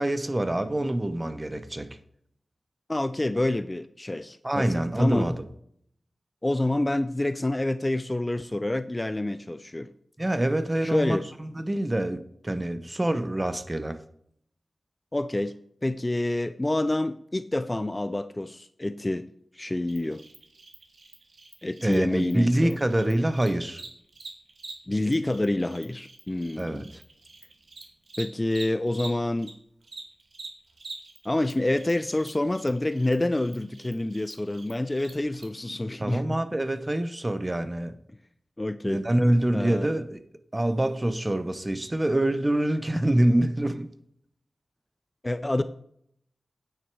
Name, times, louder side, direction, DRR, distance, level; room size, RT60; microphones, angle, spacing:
voice 1, 0.0-2.0 4.4-5.4 10.2-14.0 21.8-23.8 26.6-27.0 36.0-38.0 38.8-40.2 40.5-43.9, right 1 dB, 20° right, 0.9 m, -26 dB
voice 2, 2.9-5.3 6.4-9.9 10.8-11.2 15.1-15.5 15.8-19.2 19.5-20.2 21.6-22.8 24.9-26.9 28.2-29.5 31.2-36.2 38.6-39.0 39.5-39.9 45.2-45.6, left 1 dB, 20° left, 0.4 m, -27 dB
Cricket, 19.9-29.5 29.8-35.4, right 3 dB, 70° right, 2.2 m, -46 dB
9.2 x 9.2 x 4.7 m
wide cardioid pair, 105°, 0 cm